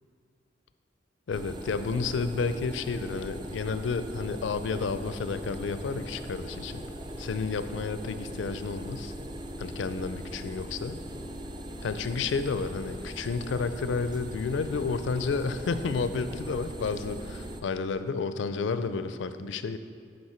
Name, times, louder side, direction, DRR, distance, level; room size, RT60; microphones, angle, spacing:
voice 1, 1.3-6.8 7.2-9.1 9.6-11.0 11.8-19.8, left 4 dB, 80° left, 11 dB, 0.4 m, -31 dB
sound 1, 1.3-17.6, right 1 dB, 25° right, 0.4 m, -40 dB
11.0 x 4.3 x 4.3 m, 2.3 s
head